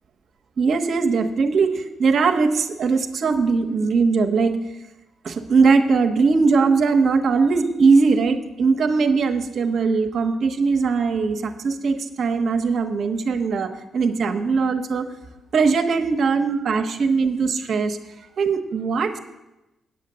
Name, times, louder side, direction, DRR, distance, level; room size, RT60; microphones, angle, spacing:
voice 1, 0.6-4.6 5.2-15.1 15.5-18.0 18.4-19.2, right 4 dB, 60° right, 6 dB, 1.0 m, -20 dB
9.2 x 6.6 x 7.9 m, 0.99 s
cardioid pair, 105°, 0 cm